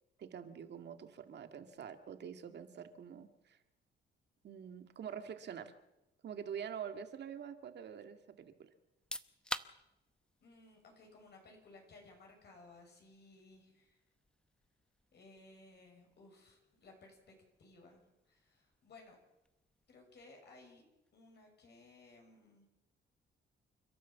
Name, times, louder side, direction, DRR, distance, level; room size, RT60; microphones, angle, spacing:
voice 1, 0.2-3.6 4.4-5.7 6.2-8.7, right 8 dB, 60° right, 7 dB, 2.1 m, -46 dB
sound 1, 8.9-21.5, left 1 dB, 5° left, 0.9 m, -52 dB
voice 2, 10.4-14.0 15.1-19.2 19.9-20.9 21.1-22.7, left 2 dB, 55° left, 1 dB, 6.9 m, -59 dB
29.5 x 12.5 x 7.4 m, 0.93 s
cardioid pair, 90°, 20 cm